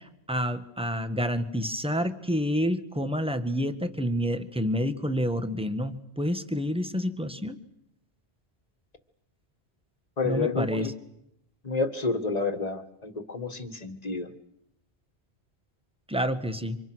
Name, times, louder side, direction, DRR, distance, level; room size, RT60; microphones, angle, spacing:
voice 1, 0.0-7.6 10.2-10.9 16.1-16.8, equal, 5° right, 9 dB, 1.4 m, -28 dB
voice 2, 10.2-10.9 11.6-14.3, left 3 dB, 35° left, 6 dB, 1.9 m, -29 dB
29.0 x 26.0 x 6.3 m, 0.80 s
omnidirectional pair, 1.1 m